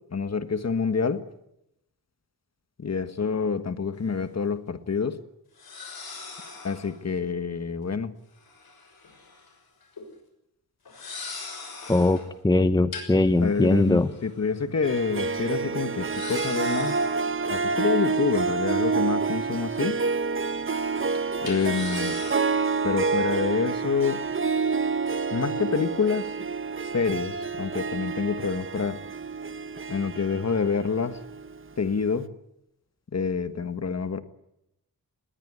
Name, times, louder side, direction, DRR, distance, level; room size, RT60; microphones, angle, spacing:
voice 1, 0.1-1.2 2.8-5.2 6.6-8.1 13.4-17.0 17.5-19.9 21.4-22.1 22.8-24.2 25.3-26.3 26.9-29.0 29.9-31.2 31.8-32.3 33.1-34.2, left 5 dB, 45° left, 11 dB, 1.5 m, -27 dB
sound 1, 3.9-4.0 5.5-7.0 8.4-9.5 9.8-10.1 10.8-12.3 12.9-14.6 15.0-15.1 15.3-15.4 16.0-17.6 18.5-19.9 20.2-20.4 21.4-22.7, left 4 dB, 75° left, 6.3 m, -41 dB
voice 2, 11.9-14.1, left 2 dB, 10° left, 11 dB, 0.8 m, -21 dB
Harp, 14.8-31.6, right 4 dB, 35° right, 0.9 m, -28 dB
21.0 x 19.0 x 9.6 m, 0.83 s
wide cardioid pair, 155°, 37 cm